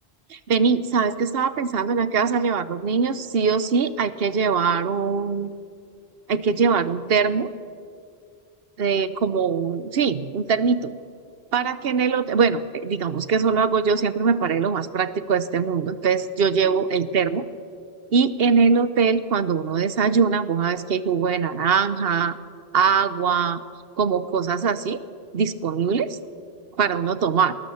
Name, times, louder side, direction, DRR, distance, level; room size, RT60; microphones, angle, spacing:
voice 1, 0.5-5.5 6.3-7.5 8.8-10.9 11.5-17.5 18.1-22.3 22.7-23.6 24.0-25.0 25.3-26.2 26.8-27.5, right 5 dB, 70° right, 14 dB, 1.0 m, -22 dB
19.5 x 19.0 x 7.0 m, 2.2 s
omnidirectional pair, 1.1 m